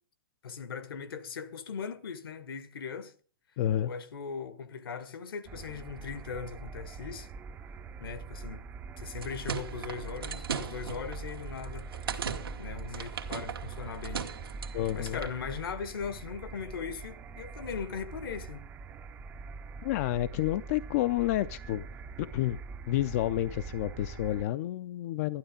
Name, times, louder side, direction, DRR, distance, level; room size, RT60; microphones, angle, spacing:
voice 1, 0.4-3.1 3.8-7.3 8.0-8.6 9.0-12.2 12.6-14.2 14.9-18.6, left 6 dB, 80° left, 1.5 m, -39 dB
voice 2, 3.6-3.9 14.7-15.2 19.8-21.9 22.2-22.6 22.9-25.4, left 14 dB, 45° left, 0.5 m, -30 dB
sound 1, 5.5-24.5, right 5 dB, 15° right, 0.5 m, -43 dB
sound 2, 9.0-15.4, right 7 dB, 85° right, 1.6 m, -39 dB
11.5 x 11.5 x 5.1 m
hypercardioid pair, 140°, 12 cm